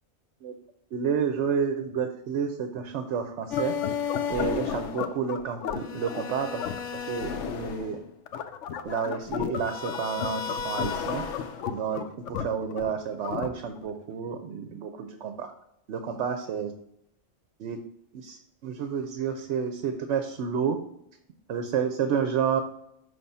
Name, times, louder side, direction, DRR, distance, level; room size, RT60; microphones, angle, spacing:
voice 1, 0.9-3.7 4.3-6.6 6.9-8.0 8.8-11.2 11.7-15.5 15.9-16.7 17.6-17.8 18.1-20.8 21.5-22.6, right 7 dB, 75° right, 7 dB, 0.9 m, -30 dB
sound 1, 3.5-13.9, left 7 dB, 85° left, 1.0 m, -32 dB
6.0 x 3.2 x 5.4 m, 0.78 s
omnidirectional pair, 1.2 m